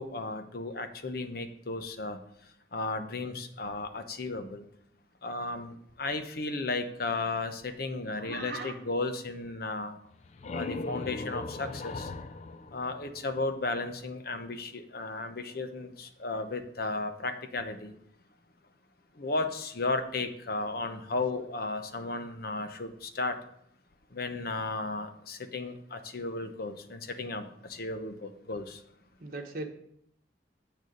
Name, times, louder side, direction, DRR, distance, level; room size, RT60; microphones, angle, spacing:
voice 1, 0.0-2.2 2.7-4.7 5.2-10.0 10.5-12.1 12.7-17.9 19.2-23.4 24.1-28.8, left 3 dB, 55° left, 7 dB, 0.9 m, -34 dB
voice 2, 8.1-8.8 29.2-29.7, right 3 dB, 50° right, 1 dB, 1.1 m, -39 dB
sound 1, 10.0-13.7, left 3 dB, 40° left, 0.4 m, -39 dB
8.4 x 6.7 x 5.2 m, 0.72 s
head